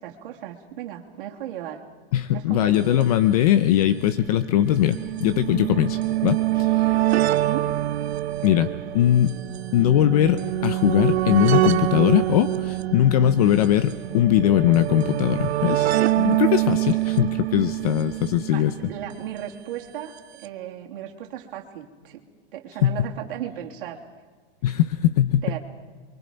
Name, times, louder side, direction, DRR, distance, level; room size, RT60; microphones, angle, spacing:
voice 1, 0.0-1.8 2.3-3.1 7.3-7.7 18.5-22.2 22.5-24.0 25.4-25.6, right 11 dB, 55° right, 1 dB, 3.2 m, -35 dB
voice 2, 2.1-6.9 8.4-9.4 9.7-18.7 22.8-23.0 24.6-25.4, left 12 dB, 40° left, 12 dB, 0.7 m, -20 dB
sound 1, 2.7-2.8 3.0-3.1 4.0-19.2 20.2-20.3 20.4-20.5, right 15 dB, 85° right, 1.0 m, -25 dB
28.5 x 24.0 x 5.3 m, 1.5 s
supercardioid pair, 175°, 31 cm